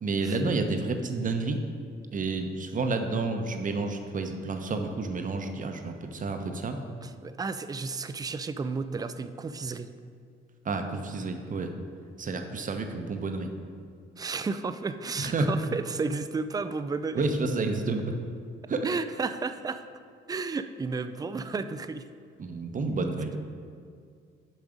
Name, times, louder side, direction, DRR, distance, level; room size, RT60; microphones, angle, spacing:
voice 1, 0.0-1.6 2.1-6.8 10.6-11.7 12.2-13.5 15.2-15.5 17.1-18.2 18.7-18.9 22.4-23.4, right 3 dB, 40° right, 5 dB, 0.8 m, -30 dB
voice 2, 7.0-9.9 14.2-17.2 18.8-19.8 20.3-22.1, right 4 dB, 20° right, 11 dB, 0.4 m, -32 dB
7.0 x 5.4 x 5.0 m, 2.3 s
cardioid pair, 90°, 20 cm